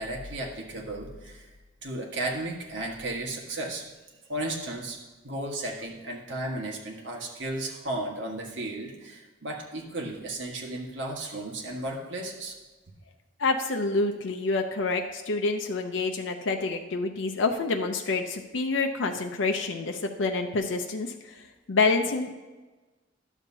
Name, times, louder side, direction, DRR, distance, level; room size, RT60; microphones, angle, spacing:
voice 1, 0.0-1.5 1.8-3.9 4.3-5.0 5.2-12.5, right 1 dB, 70° right, -1 dB, 1.6 m, -34 dB
voice 2, 13.4-21.3 21.7-22.4, left 3 dB, 85° left, 4 dB, 0.6 m, -27 dB
11.5 x 7.2 x 2.8 m, 1.2 s
head